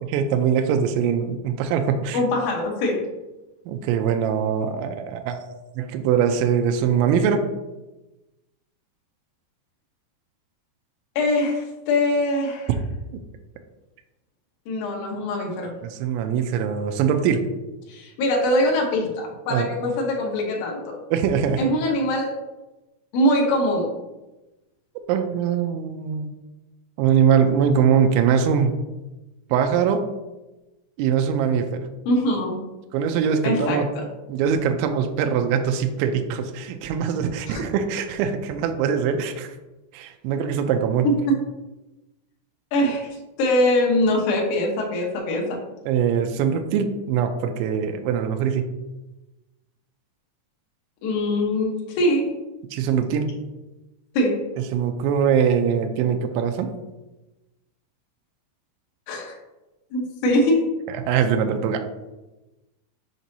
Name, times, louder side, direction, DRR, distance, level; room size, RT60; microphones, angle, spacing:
voice 1, 0.1-2.2 3.7-5.4 5.8-7.5 15.8-17.5 19.5-19.7 21.1-21.7 25.1-26.3 27.0-28.9 29.5-30.1 31.0-31.8 32.9-33.8 34.3-39.5 39.9-41.1 45.9-48.7 52.7-53.3 54.6-56.7 60.9-61.9, right 7 dB, 85° right, 6 dB, 2.9 m, -22 dB
voice 2, 2.1-3.0 11.1-12.7 14.6-15.7 17.9-21.0 21.6-22.4 23.1-23.9 32.0-32.6 33.4-33.8 37.5-37.6 41.0-41.4 42.7-43.1 43.4-45.6 51.0-52.2 54.1-54.4 59.1-59.4 59.9-60.7, left 1 dB, 90° left, -1 dB, 1.7 m, -22 dB
7.4 x 5.1 x 2.7 m, 1.0 s
omnidirectional pair, 5.3 m